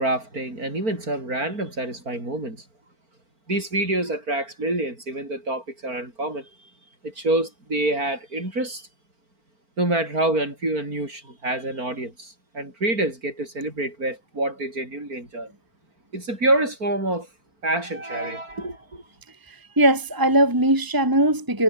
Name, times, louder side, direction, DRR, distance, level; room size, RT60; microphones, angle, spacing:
voice 1, 0.0-2.6 3.5-6.5 7.0-8.9 9.8-15.5 16.1-17.3 17.6-19.0, right 2 dB, 50° right, 8.2 m, -27 dB
voice 2, 19.5-21.6, right 1 dB, 10° right, 2.6 m, -20 dB
omnidirectional pair, 1.9 m